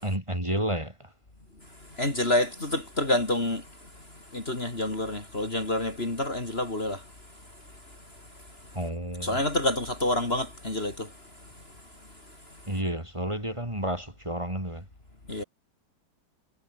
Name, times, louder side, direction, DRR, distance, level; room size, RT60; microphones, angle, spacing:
voice 1, 0.0-1.1 8.7-9.4 12.7-14.8, right 1 dB, 15° right, 4.6 m, -31 dB
voice 2, 2.0-3.6 4.3-7.0 9.2-11.1 15.3-15.4, left 1 dB, 35° left, 3.6 m, -28 dB
omnidirectional pair, 1.9 m